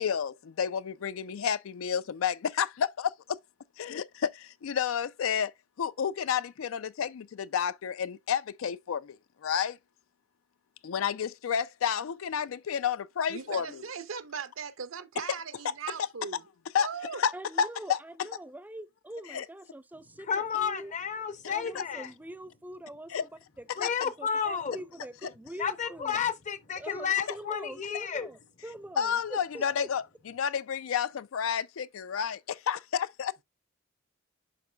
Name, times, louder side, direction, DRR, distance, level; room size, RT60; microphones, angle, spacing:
voice 1, 0.0-3.4 3.8-5.5 5.8-9.8 10.8-13.8 16.7-17.3 17.6-18.0 19.3-19.4 21.8-21.9 23.1-23.2 23.8-23.9 29.0-33.3, left 7 dB, 90° left, 0.4 m, -30 dB
voice 2, 13.3-16.4 16.8-17.2, right 6 dB, 80° right, 0.7 m, -38 dB
voice 3, 17.3-20.3 20.6-20.9 21.5-23.3 23.6-26.2 26.8-29.9, right 1 dB, 10° right, 0.5 m, -44 dB
voice 4, 20.3-22.1 23.8-24.8 25.6-28.3, left 7 dB, 40° left, 0.6 m, -31 dB
11.5 x 3.9 x 2.2 m
head